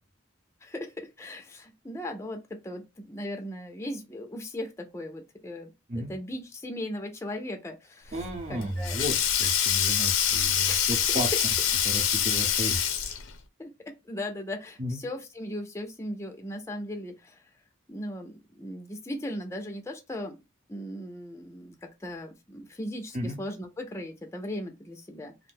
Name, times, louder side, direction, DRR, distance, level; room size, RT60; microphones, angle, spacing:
voice 1, 0.6-5.7 6.0-8.2 8.5-9.0 10.7-11.2 13.6-13.7 14.1-17.4 17.9-20.4 20.7-25.3, left 1 dB, 15° left, 0.4 m, -38 dB
voice 2, 8.1-9.1 9.4-11.3 11.8-12.9 14.8-15.0 23.1-23.4, equal, 35° right, 0.8 m, -33 dB
Sink (filling or washing), 8.2-13.4, left 9 dB, 90° left, 0.5 m, -25 dB
2.5 x 2.0 x 3.3 m
head